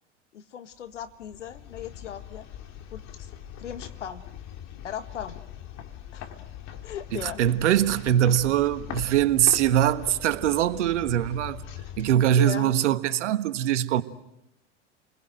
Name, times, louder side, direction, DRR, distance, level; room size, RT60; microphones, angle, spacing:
voice 1, 0.3-2.5 2.9-3.3 3.6-4.2 4.8-5.4 6.1-6.3 6.8-7.4 12.4-12.7, left 9 dB, 85° left, 1.8 m, -37 dB
sound 1, 0.9-13.0, left 10 dB, 45° left, 2.7 m, -42 dB
voice 2, 7.1-11.7 12.0-14.0, right 11 dB, 75° right, 1.5 m, -22 dB
29.5 x 21.0 x 7.8 m
hypercardioid pair, 90°, 35 cm